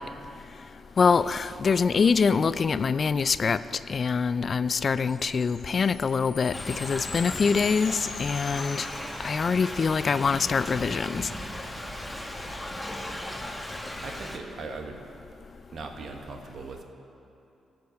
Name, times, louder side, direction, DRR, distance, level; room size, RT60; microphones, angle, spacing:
voice 1, 1.0-3.6 3.9-8.9 9.2-11.2, left 5 dB, 50° left, 15 dB, 0.3 m, -24 dB
sound 1, 5.1-9.7, left 7 dB, 70° left, 0.8 m, -42 dB
Thunder / Rain, 6.5-14.4, left 1 dB, 10° left, 1.2 m, -37 dB
voice 2, 14.0-15.0 15.7-16.8, right 4 dB, 65° right, 4 dB, 1.1 m, -39 dB
14.5 x 5.3 x 6.5 m, 2.8 s
hypercardioid pair, 45°, 0 cm